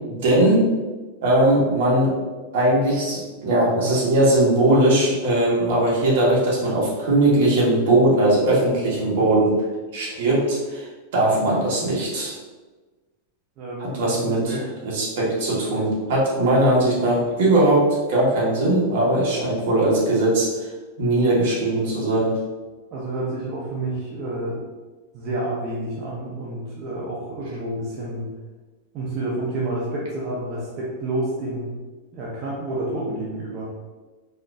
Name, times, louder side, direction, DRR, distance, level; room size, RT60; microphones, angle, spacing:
voice 1, 0.1-0.7 1.2-2.1 2.5-9.6 9.9-12.3 13.8-20.7 21.0-22.4, right 1 dB, 60° right, -4 dB, 1.2 m, -20 dB
voice 2, 13.6-14.2 14.5-14.7 22.9-24.6 25.1-28.3 28.9-31.7 32.1-33.7, right 1 dB, 30° right, -6 dB, 0.6 m, -29 dB
4.2 x 2.4 x 2.4 m, 1.3 s
supercardioid pair, 160°, 0 cm